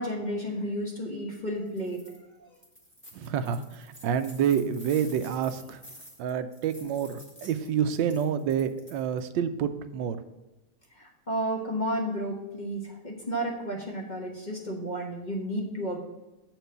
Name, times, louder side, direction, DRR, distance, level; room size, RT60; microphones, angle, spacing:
voice 1, 0.0-2.0 2.4-2.5 10.9-16.0, right 1 dB, 30° left, -1 dB, 1.2 m, -32 dB
sound 1, 1.7-2.2 2.5-9.3, equal, 5° left, 1.5 m, -51 dB
voice 2, 3.1-5.8 6.2-10.2, right 8 dB, 85° right, 10 dB, 1.3 m, -28 dB
7.9 x 4.5 x 6.7 m, 1.0 s
omnidirectional pair, 1.9 m